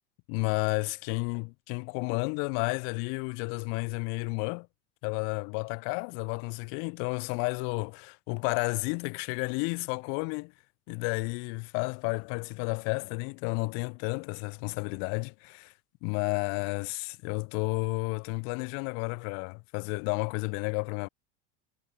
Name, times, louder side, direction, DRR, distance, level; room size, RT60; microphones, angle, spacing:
voice 1, 0.3-4.7 5.0-10.5 10.9-15.7 16.0-21.1, left 39 dB, 50° left, 0.4 m, -32 dB
cardioid pair, 160°, 29 cm